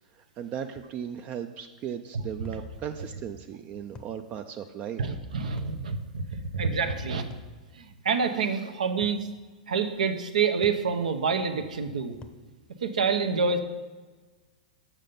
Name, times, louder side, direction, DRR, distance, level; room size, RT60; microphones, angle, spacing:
voice 1, 0.2-5.0, right 8 dB, 35° right, 8 dB, 0.4 m, -37 dB
sound 1, 0.8-1.0 2.4-2.7 3.9-4.2 5.6-5.8 7.3-7.6 9.0-9.3 10.6-10.9 12.2-12.5, left 4 dB, 20° left, 0.7 m, -47 dB
voice 2, 5.0-7.2 7.7-9.2 9.7-12.2 12.8-13.6, right 5 dB, 80° right, 8 dB, 0.7 m, -27 dB
7.3 x 5.6 x 5.2 m, 1.3 s
hypercardioid pair, 115°, 4 cm